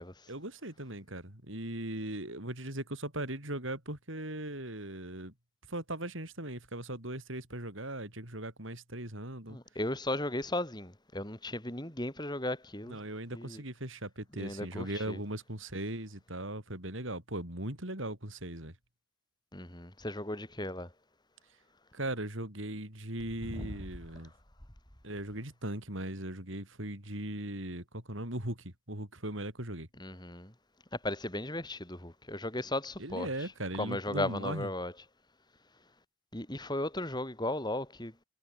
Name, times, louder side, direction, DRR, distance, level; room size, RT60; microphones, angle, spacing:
voice 1, 0.3-5.3 5.7-9.6 12.8-18.7 21.9-24.3 25.0-29.9 33.0-34.7, right 1 dB, 65° right, 6.1 m, -39 dB
voice 2, 9.5-13.0 13.3-13.6 14.4-15.2 19.5-20.9 23.6-23.7 30.0-30.5 31.0-33.3 33.8-34.9 36.3-38.1, left 1 dB, 20° left, 5.3 m, -36 dB
head